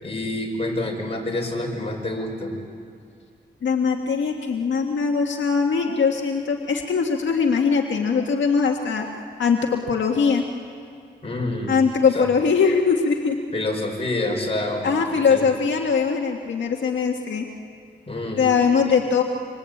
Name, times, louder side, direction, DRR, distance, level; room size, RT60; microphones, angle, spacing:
voice 1, 0.0-2.6 11.2-11.8 12.1-12.3 13.5-15.4 18.1-18.4, left 1 dB, 30° left, 0 dB, 5.9 m, -27 dB
voice 2, 3.6-9.1 9.4-10.4 11.7-13.3 14.8-17.5 18.4-19.2, left 5 dB, 80° left, 1 dB, 1.7 m, -21 dB
27.0 x 25.5 x 8.6 m, 2.3 s
wide cardioid pair, 100°, 19 cm